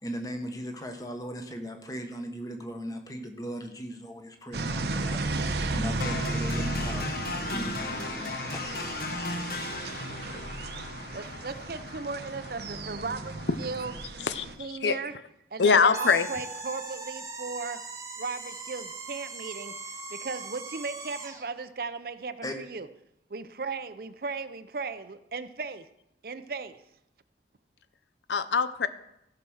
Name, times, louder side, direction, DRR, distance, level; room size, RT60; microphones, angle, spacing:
voice 1, 0.0-5.2 5.7-8.9 22.4-22.6, equal, 20° left, 5 dB, 1.2 m, -38 dB
sound 1, 4.5-14.6, right 2 dB, 70° right, 0.9 m, -34 dB
sound 2, 6.0-14.0, left 3 dB, 55° left, 0.8 m, -37 dB
voice 2, 11.1-13.9 14.6-15.1 15.5-17.8 18.2-19.7 20.1-22.9 23.3-25.9 26.2-26.8, right 4 dB, 55° right, 12 dB, 0.6 m, -36 dB
voice 3, 14.2-15.0 15.6-16.3 28.3-28.9, left 5 dB, 90° left, 13 dB, 0.7 m, -23 dB
sound 3, 15.9-21.5, right 3 dB, 20° right, 1.1 m, -40 dB
15.0 x 5.9 x 6.4 m, 0.82 s
head